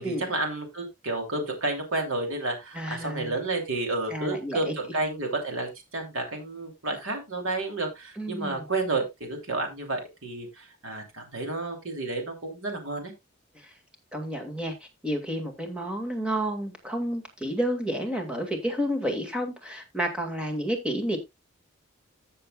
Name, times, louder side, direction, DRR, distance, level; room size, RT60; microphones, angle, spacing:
voice 1, 0.0-13.1, right 2 dB, 85° right, 3.1 m, -31 dB
voice 2, 2.7-3.3 4.1-4.7 8.2-8.7 14.1-14.7 15.0-21.2, equal, 5° right, 2.1 m, -30 dB
14.5 x 6.8 x 2.4 m
head